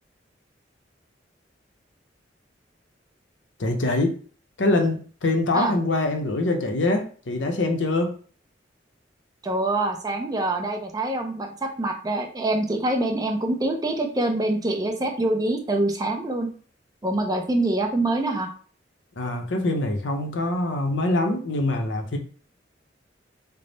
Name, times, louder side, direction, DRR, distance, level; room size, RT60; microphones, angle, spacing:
voice 1, 3.6-4.2 4.6-8.2 19.2-22.2, left 2 dB, 80° left, 4 dB, 0.7 m, -24 dB
voice 2, 9.4-16.5 17.0-18.5, right 2 dB, 20° right, 3 dB, 0.5 m, -25 dB
3.4 x 2.1 x 3.9 m, 0.42 s
head